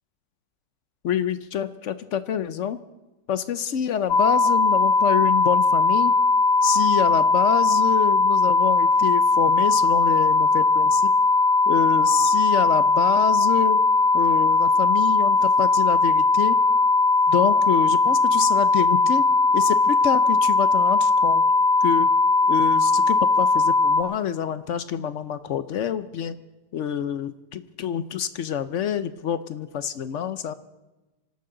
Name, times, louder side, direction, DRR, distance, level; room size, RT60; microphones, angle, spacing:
voice 1, 1.0-2.8 3.3-6.1 6.6-11.1 11.7-13.8 14.1-16.6 17.3-19.2 19.5-21.4 21.8-22.1 22.5-26.4 26.7-30.5, left 9 dB, 65° left, 13 dB, 0.7 m, -27 dB
sound 1, 4.1-24.0, left 3 dB, 90° left, 0.4 m, -19 dB
26.0 x 12.5 x 3.8 m, 1.1 s
omnidirectional pair, 1.8 m